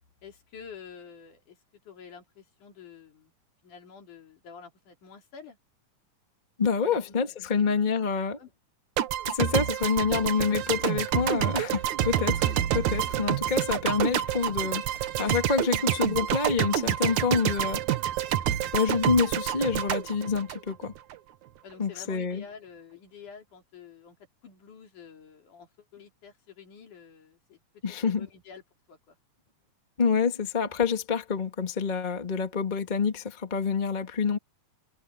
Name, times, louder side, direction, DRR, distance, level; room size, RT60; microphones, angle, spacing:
voice 1, 0.0-1.6 1.8-3.3 3.6-5.6 6.8-7.6 8.4-8.5 11.6-11.8 21.6-24.2 24.4-27.6 28.0-28.6 28.9-29.2, left 6 dB, 70° left, 4.7 m, -48 dB
voice 2, 6.6-8.4 9.3-17.8 18.7-20.9 21.8-22.4 27.8-28.3 30.0-34.4, left 5 dB, 20° left, 1.4 m, -27 dB
sound 1, 9.0-21.2, right 11 dB, 70° right, 2.4 m, -28 dB
omnidirectional pair, 3.7 m